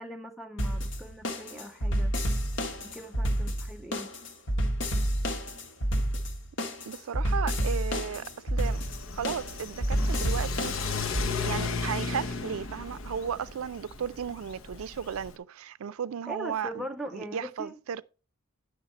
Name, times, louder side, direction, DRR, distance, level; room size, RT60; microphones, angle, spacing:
voice 1, 0.0-2.2 2.8-4.1 16.3-17.8, equal, ahead, 0.3 m, -41 dB
sound 1, 0.6-11.3, equal, 60° left, 1.2 m, -29 dB
voice 2, 6.9-8.8 9.1-10.7 11.5-16.9 17.1-18.0, right 7 dB, 85° right, 0.4 m, -35 dB
Car / Accelerating revving vroom, 8.6-15.4, left 4 dB, 75° left, 0.8 m, -35 dB
9.6 x 6.4 x 4.1 m
head